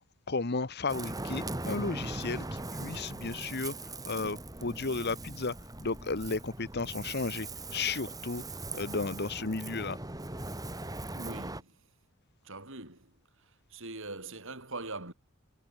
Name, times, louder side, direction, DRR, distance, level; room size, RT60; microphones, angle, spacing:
voice 1, 0.3-5.5 5.8-7.5 7.7-8.4 8.7-10.0, left 3 dB, 50° left, 1.2 m, -34 dB
Ocean, 0.9-11.6, right 2 dB, 15° right, 1.9 m, -40 dB
voice 2, 11.2-11.7 12.4-13.1 13.7-15.1, right 3 dB, 60° right, 7.6 m, -42 dB
head